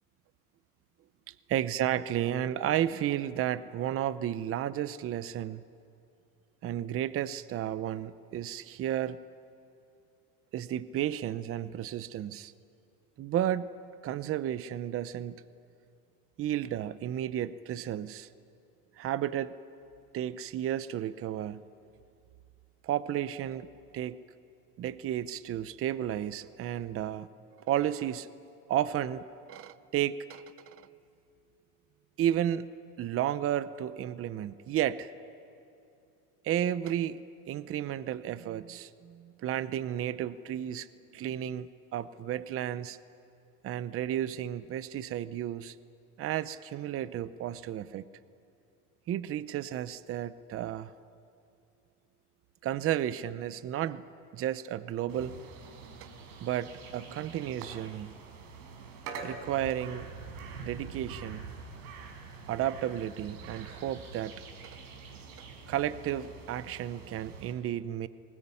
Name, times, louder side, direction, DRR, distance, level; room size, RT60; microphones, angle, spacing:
voice 1, 1.3-5.6 6.6-9.2 10.5-12.5 13.2-13.7 14.0-15.4 16.4-18.3 19.0-19.5 20.1-21.6 22.8-23.7 23.9-24.2 24.8-27.3 27.7-28.3 28.7-30.8 32.2-32.7 33.0-35.1 36.4-40.9 41.1-43.0 43.6-45.8 46.2-48.0 49.1-50.9 52.6-54.0 54.3-55.4 56.0-56.1 56.4-58.1 59.2-60.1 60.6-61.5 62.5-64.3 65.7-68.1, right 11 dB, 30° right, 15 dB, 0.7 m, -32 dB
sound 1, 55.1-67.5, right 5 dB, 80° right, 4.5 m, -45 dB
21.0 x 20.0 x 9.8 m, 2.6 s
supercardioid pair, 125°, 44 cm